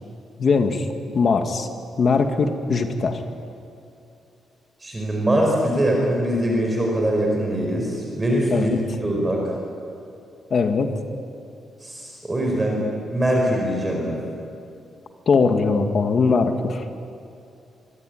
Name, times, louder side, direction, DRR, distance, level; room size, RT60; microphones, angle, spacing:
voice 1, 0.4-0.9 1.1-1.7 2.0-3.2 8.5-8.8 10.5-10.9 15.3-16.9, left 4 dB, 40° left, 6 dB, 2.2 m, -20 dB
voice 2, 4.8-8.7 9.0-9.4 11.8-12.8 13.1-14.2, right 1 dB, 15° right, -1 dB, 5.0 m, -22 dB
25.0 x 25.0 x 9.5 m, 2.6 s
wide cardioid pair, 170°, 0 cm